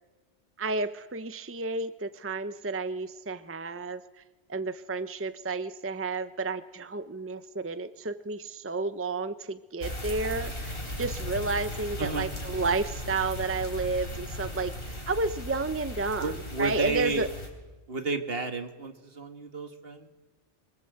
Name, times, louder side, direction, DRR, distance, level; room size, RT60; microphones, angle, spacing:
voice 1, 0.6-4.0 4.5-16.3 16.6-17.3, right 3 dB, 15° right, 12 dB, 0.7 m, -31 dB
sound 1, 9.8-17.5, left 1 dB, 60° left, 4.5 m, -37 dB
voice 2, 12.0-12.3 16.2-17.3 17.9-20.1, right 3 dB, 60° right, 7 dB, 1.9 m, -32 dB
26.0 x 23.0 x 8.0 m, 1.2 s
omnidirectional pair, 1.1 m